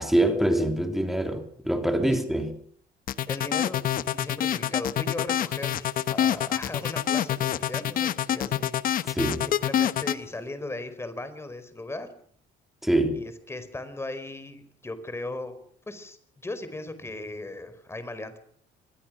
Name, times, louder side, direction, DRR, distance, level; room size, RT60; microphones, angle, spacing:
voice 1, 0.0-2.6 9.0-9.5 12.8-13.2, right 1 dB, ahead, 3.2 m, -25 dB
sound 1, 3.1-10.2, left 11 dB, 55° left, 1.1 m, -26 dB
voice 2, 3.3-12.1 13.1-15.6 15.9-18.4, left 2 dB, 15° left, 4.7 m, -38 dB
25.5 x 21.5 x 6.4 m
cardioid pair, 110°, 17 cm